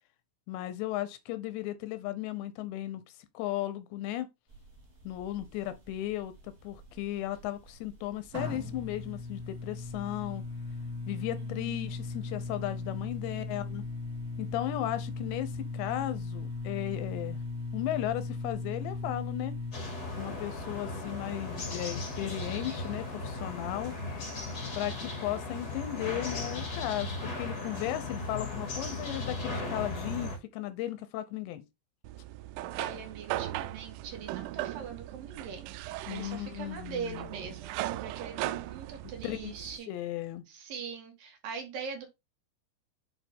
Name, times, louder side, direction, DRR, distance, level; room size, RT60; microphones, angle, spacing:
voice 1, 0.5-3.0 3.3-4.3 5.0-10.4 11.1-13.8 14.4-17.4 17.7-19.6 20.2-23.9 24.7-31.6 36.1-37.3 39.2-40.5, left 13 dB, 80° left, 2.8 m, -36 dB
sound 1, 4.5-19.7, left 3 dB, 35° right, 1.5 m, -38 dB
sound 2, 19.7-30.4, left 2 dB, 40° left, 1.4 m, -37 dB
sound 3, 32.0-39.8, right 15 dB, 85° right, 2.9 m, -38 dB
voice 2, 32.7-39.9 40.5-42.1, right 6 dB, 55° right, 3.0 m, -42 dB
8.3 x 4.7 x 3.6 m
omnidirectional pair, 5.6 m